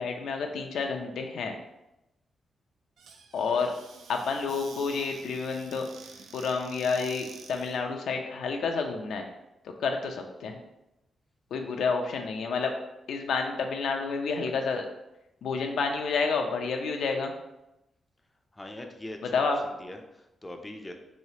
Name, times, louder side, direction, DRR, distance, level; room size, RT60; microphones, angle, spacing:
voice 1, 0.0-1.6 3.3-3.7 4.1-5.9 6.3-9.3 9.8-10.6 11.5-12.7 13.1-14.9 15.4-17.3 19.3-19.6, left 4 dB, 85° left, 4 dB, 0.4 m, -29 dB
Squeak / Cupboard open or close, 3.0-7.8, right 5 dB, 80° right, 0.4 m, -49 dB
voice 2, 18.5-20.9, left 1 dB, 15° left, 4 dB, 0.3 m, -42 dB
3.1 x 3.1 x 2.7 m, 0.92 s
cardioid pair, 120°, 0 cm